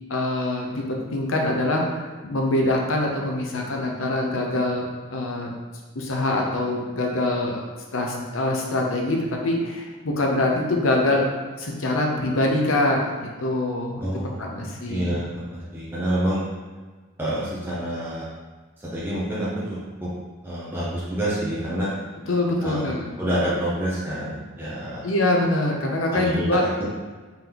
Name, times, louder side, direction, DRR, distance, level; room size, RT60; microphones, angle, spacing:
voice 1, 0.1-5.5 5.9-7.7 7.9-9.2 9.4-11.3 11.6-14.0 14.4-15.2 22.3-23.0 25.0-26.6, left 1 dB, 70° left, 0 dB, 0.7 m, -24 dB
voice 2, 14.0-16.4 17.2-18.3 18.8-19.6 20.0-20.1 20.4-21.9 22.6-22.9 23.2-25.0 26.1-26.9, equal, 10° right, -8 dB, 0.6 m, -27 dB
3.9 x 3.4 x 2.9 m, 1.4 s
head